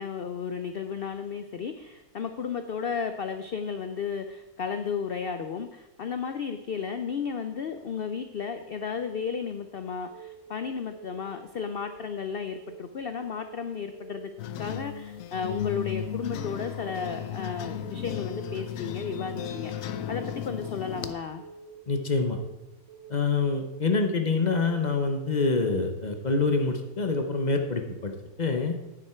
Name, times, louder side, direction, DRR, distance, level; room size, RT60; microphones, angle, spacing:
voice 1, 0.0-14.3 14.6-21.4, left 6 dB, 85° left, 8 dB, 0.5 m, -33 dB
Keyboard (musical) / Alarm, 10.1-10.5 10.9-11.2 11.6-12.0 12.4-12.7 13.1-13.5 13.9-14.2 14.6-15.0 15.4-15.7 16.1-16.5 16.9-17.3 17.6-18.0 18.4-18.8 19.1-19.5 19.9-20.3 20.6-21.0 21.4-21.8 22.1-22.5 22.9-23.3 23.6-24.0 24.4-24.8 25.1-25.5 25.9-26.3, right 6 dB, 50° right, 2.0 m, -47 dB
sound 1, 14.4-21.1, left 9 dB, 70° left, 0.9 m, -35 dB
voice 2, 21.9-22.4 23.1-28.7, left 3 dB, 35° left, 5 dB, 0.8 m, -26 dB
9.8 x 9.0 x 4.4 m, 1.0 s
omnidirectional pair, 1.7 m